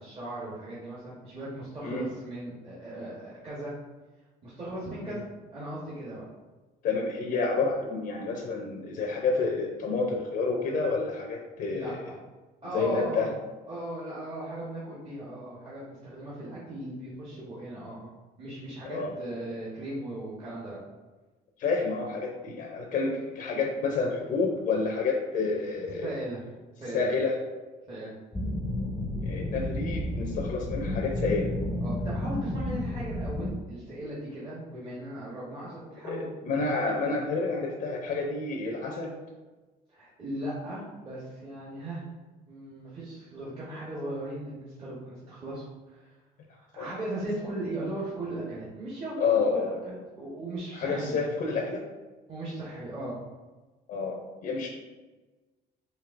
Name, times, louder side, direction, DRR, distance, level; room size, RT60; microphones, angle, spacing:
voice 1, 0.0-3.7 4.4-5.2 5.5-6.2 11.7-12.2 12.6-13.3 13.7-18.1 18.4-20.8 25.9-26.4 26.8-27.1 27.9-28.1 31.8-36.3 39.9-42.0 42.5-46.1 46.6-51.2 52.3-53.2, right 1 dB, 30° right, -8 dB, 1.1 m, -37 dB
voice 2, 6.8-12.0 12.7-13.3 18.8-19.1 21.6-26.1 26.9-27.4 29.2-31.5 36.1-39.1 46.8-46.9 49.2-49.7 50.7-51.8 53.9-54.7, left 4 dB, 55° left, -1 dB, 0.6 m, -29 dB
sound 1, 28.3-33.5, left 1 dB, 10° left, 0.5 m, -31 dB
4.5 x 2.8 x 2.5 m, 1.2 s
cardioid pair, 110°, 17 cm